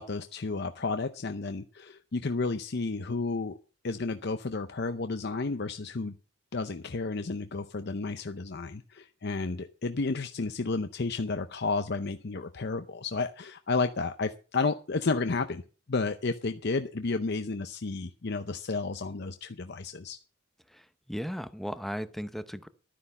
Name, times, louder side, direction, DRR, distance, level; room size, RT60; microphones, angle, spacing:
voice 1, 0.0-3.6 3.8-6.1 6.5-15.6 15.9-20.2, left 3 dB, 55° left, 8 dB, 0.7 m, -32 dB
voice 2, 20.7-22.7, equal, ahead, 11 dB, 0.7 m, -36 dB
12.0 x 10.0 x 5.5 m, 0.38 s
head